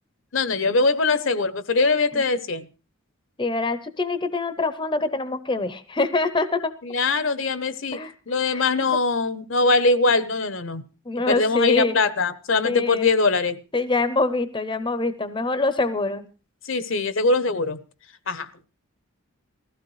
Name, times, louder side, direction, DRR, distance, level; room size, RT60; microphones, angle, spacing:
voice 1, 0.3-2.7 6.8-8.0 8.3-10.8 11.3-13.6 16.6-17.8 18.3-18.7, left 3 dB, 60° left, 0.8 m, -22 dB
voice 2, 3.4-6.7 7.9-8.1 8.5-8.7 11.1-11.9 12.6-13.1 13.7-16.2, left 3 dB, 20° left, 0.6 m, -24 dB
20.0 x 15.0 x 3.2 m
head